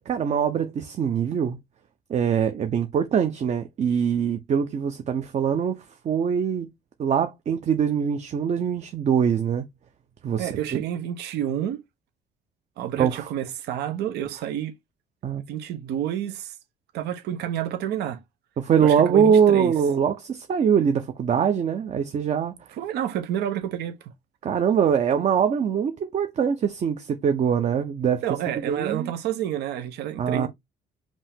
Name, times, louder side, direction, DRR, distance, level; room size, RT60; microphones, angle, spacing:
voice 1, 0.0-1.6 2.1-6.7 7.0-9.6 10.2-10.6 13.0-13.3 15.2-15.4 18.6-22.5 24.4-28.2 28.7-29.1 30.2-30.5, right 7 dB, 40° right, 0.7 m, -23 dB
voice 2, 10.4-11.8 12.8-14.7 15.5-16.5 16.9-18.2 18.8-19.7 22.8-24.1 28.2-30.5, right 10 dB, 80° right, 1.0 m, -29 dB
5.2 x 2.8 x 3.6 m
cardioid pair, 110°, 17 cm